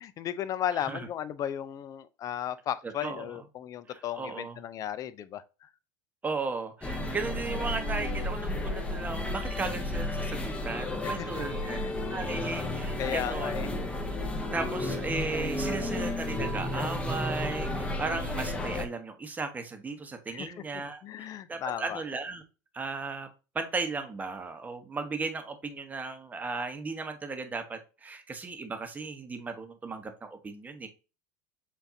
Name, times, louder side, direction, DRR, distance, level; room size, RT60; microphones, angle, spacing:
voice 1, 0.0-5.7 11.0-11.9 13.0-13.7 20.3-22.0, left 10 dB, 35° left, 0.5 m, -35 dB
voice 2, 0.7-1.1 3.0-3.3 3.9-4.6 6.2-11.8 12.1-13.5 14.5-22.4 22.7-23.3 23.5-30.9, right 4 dB, 15° right, 1.0 m, -36 dB
sound 1, 6.8-18.9, left 1 dB, 10° left, 0.8 m, -32 dB
7.1 x 2.6 x 2.7 m
supercardioid pair, 120°, 10 cm